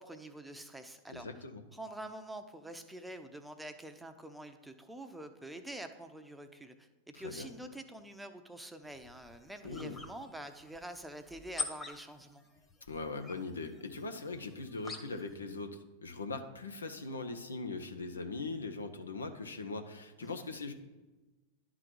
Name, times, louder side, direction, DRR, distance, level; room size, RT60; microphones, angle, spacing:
voice 1, 0.0-1.3 1.7-6.9 7.1-12.4 20.2-20.5, right 1 dB, 5° right, 6 dB, 0.7 m, -46 dB
voice 2, 1.1-1.6 7.2-7.5 9.6-10.0 12.9-20.7, left 3 dB, 90° left, 7 dB, 0.7 m, -41 dB
toy squeak, 8.8-15.4, left 3 dB, 20° left, 1.1 m, -46 dB
11.0 x 3.9 x 4.6 m, 1.1 s
hypercardioid pair, 100°, 0 cm